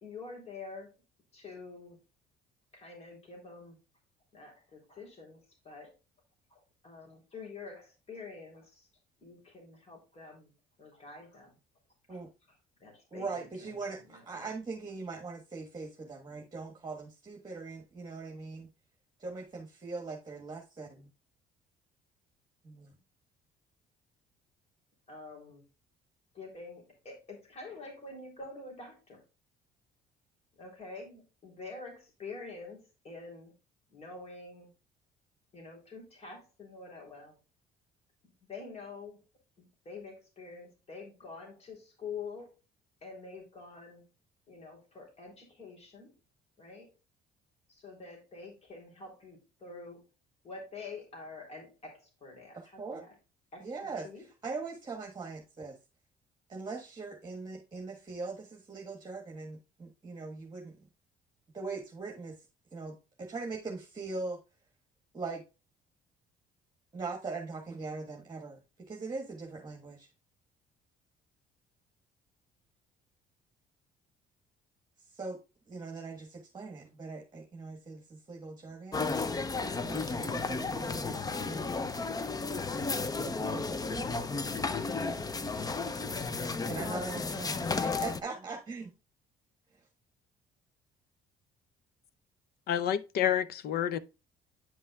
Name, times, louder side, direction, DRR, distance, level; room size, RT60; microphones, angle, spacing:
voice 1, 0.0-0.9 1.3-2.0 2.7-3.8 4.3-5.9 6.5-8.9 9.2-10.5 10.8-11.5 12.1-12.2 12.8-13.8 14.1-14.4 25.1-25.6 26.3-29.2 30.6-33.5 33.9-34.7 35.5-37.4 38.5-39.2 39.6-42.5 43.0-44.0 44.5-46.1 46.6-46.9 47.7-50.0 50.4-53.1 53.5-54.3, left 4 dB, 40° left, 3.5 m, -47 dB
voice 2, 13.1-18.7 19.2-21.1 22.6-22.9 52.5-53.0 53.6-55.8 56.5-60.8 61.5-62.4 62.7-64.4 65.1-65.4 66.9-70.1 75.1-75.4 75.7-79.2 79.8-81.9 83.2-84.3 86.7-88.9, right 4 dB, 25° right, 1.5 m, -41 dB
sound 1, 78.9-88.2, left 4 dB, 20° left, 0.6 m, -33 dB
voice 3, 92.7-94.0, left 10 dB, 65° left, 0.7 m, -29 dB
10.5 x 5.4 x 2.4 m
cardioid pair, 110°, 17 cm